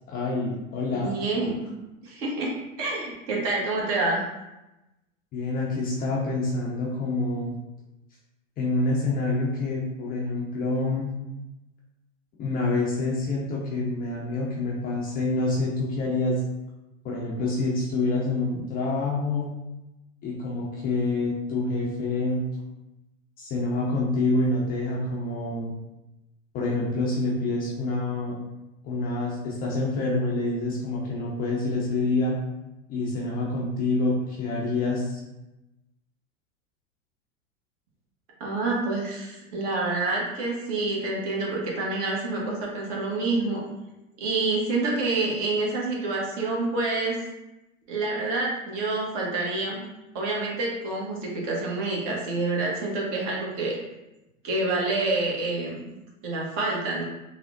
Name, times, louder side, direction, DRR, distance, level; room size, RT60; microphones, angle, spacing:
voice 1, 0.1-1.1 5.3-7.5 8.6-11.1 12.4-16.4 17.0-19.5 20.2-22.4 23.4-25.7 26.5-28.4 28.8-32.4 32.9-35.2, left 2 dB, 25° left, -4 dB, 0.4 m, -27 dB
voice 2, 0.9-1.6 2.0-2.5 2.8-4.2 38.4-43.6 44.2-47.2 47.9-49.8 50.1-53.8 54.4-55.8 56.2-57.0, right 2 dB, 45° right, -2 dB, 0.9 m, -27 dB
3.3 x 2.0 x 2.4 m, 0.97 s
hypercardioid pair, 100°, 39 cm